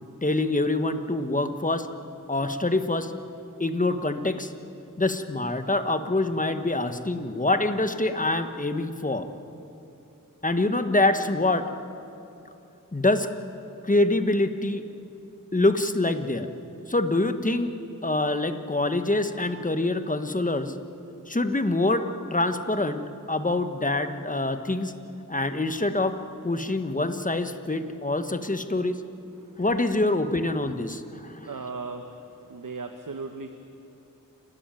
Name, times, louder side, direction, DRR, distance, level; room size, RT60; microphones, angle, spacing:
voice 1, 0.2-1.9 2.3-3.1 3.6-4.5 5.0-9.3 10.4-11.6 12.9-13.3 13.8-14.8 15.5-16.5 16.9-17.7 18.0-20.7 21.3-22.0 22.3-23.0 23.3-24.9 25.3-26.2 26.4-29.0 29.6-31.5, left 2 dB, 25° left, 9 dB, 1.3 m, -25 dB
voice 2, 31.4-32.2 32.5-33.5, right 4 dB, 65° right, 6 dB, 1.2 m, -36 dB
28.5 x 13.0 x 9.1 m, 2.8 s
wide cardioid pair, 65°, 34 cm